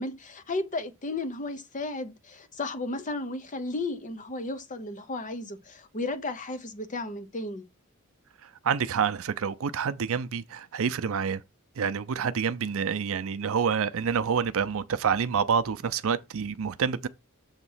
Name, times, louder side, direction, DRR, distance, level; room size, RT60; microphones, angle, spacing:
voice 1, 0.0-7.6, left 2 dB, 35° left, 0.7 m, -34 dB
voice 2, 8.6-11.4 11.8-17.1, right 6 dB, 65° right, 0.5 m, -27 dB
7.2 x 3.0 x 5.5 m
head